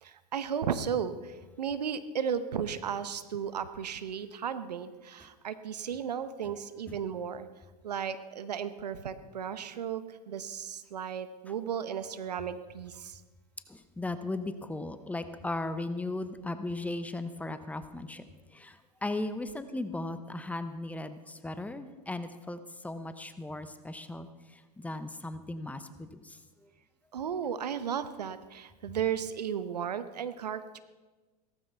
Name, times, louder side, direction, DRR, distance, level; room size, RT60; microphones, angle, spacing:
voice 1, 0.0-7.5 7.8-13.2 27.1-30.8, right 8 dB, 85° right, 12 dB, 0.9 m, -35 dB
voice 2, 13.7-18.3 18.5-26.4, left 2 dB, 5° left, 11 dB, 0.8 m, -37 dB
17.0 x 14.0 x 3.5 m, 1.3 s
hypercardioid pair, 100°, 20 cm